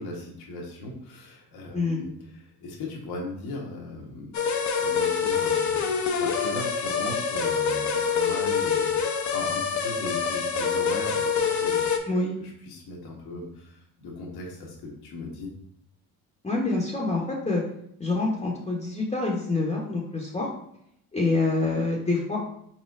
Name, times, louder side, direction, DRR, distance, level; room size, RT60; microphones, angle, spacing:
voice 1, 0.0-4.3 4.8-11.8 12.4-15.5, left 2 dB, 75° left, -1 dB, 1.3 m, -38 dB
sound 1, 4.3-12.0, left 6 dB, 50° left, 0.7 m, -26 dB
voice 2, 16.4-17.6 18.0-20.5 21.1-22.4, left 3 dB, 15° left, -2 dB, 0.9 m, -26 dB
4.3 x 4.2 x 2.5 m, 0.72 s
cardioid pair, 85°, 38 cm